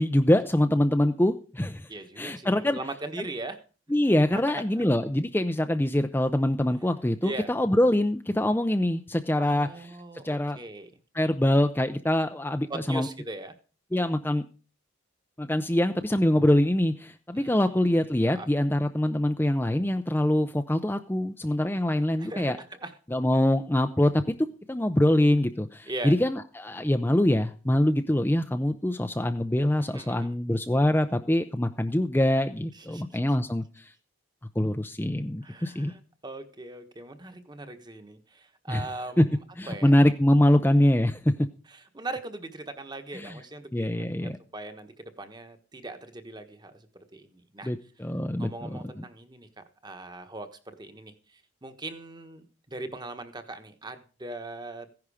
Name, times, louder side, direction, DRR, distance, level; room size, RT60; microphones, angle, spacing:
voice 1, 0.0-1.9 2.2-2.8 3.9-9.9 10.2-10.6 11.1-13.1 13.9-14.4 15.4-22.6 23.1-33.9 34.6-35.9 38.7-38.9 39.2-39.3 39.6-41.3 43.1-43.4 43.7-44.4 47.6-49.0, left 1 dB, 10° left, 7 dB, 0.6 m, -24 dB
voice 2, 1.9-3.6 4.3-4.8 7.2-7.5 9.4-10.9 12.7-13.5 17.3-18.5 22.2-22.9 25.9-26.1 29.8-30.3 32.7-33.2 35.4-39.9 41.7-46.9 47.1-47.7 48.4-54.9, right 2 dB, 20° right, 8 dB, 1.3 m, -40 dB
15.5 x 10.5 x 4.9 m, 0.38 s
head